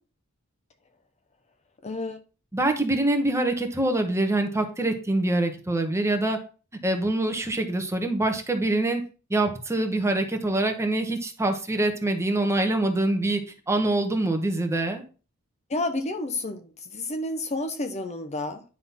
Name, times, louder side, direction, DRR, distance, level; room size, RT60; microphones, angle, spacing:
voice 1, 1.8-2.2 15.7-18.6, left 2 dB, 35° left, 0.8 m, -30 dB
voice 2, 2.5-6.4 6.8-9.0 9.3-13.4 13.7-15.0, right 2 dB, 15° right, 1.2 m, -25 dB
10.0 x 3.9 x 5.7 m
head